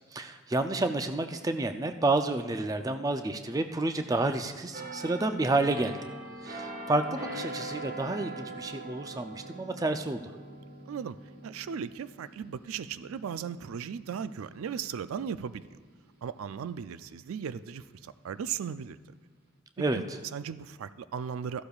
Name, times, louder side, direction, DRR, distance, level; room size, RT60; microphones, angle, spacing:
voice 1, 0.1-6.0 6.4-10.2 19.8-20.2, right 2 dB, 15° right, 8 dB, 0.4 m, -30 dB
sound 1, 4.7-16.3 16.7-17.0, right 1 dB, 45° right, 1.3 m, -43 dB
voice 2, 11.4-15.6 16.2-19.0 19.9-20.0 20.3-21.6, right 7 dB, 90° right, 14 dB, 0.4 m, -37 dB
14.5 x 11.5 x 2.4 m, 1.5 s
head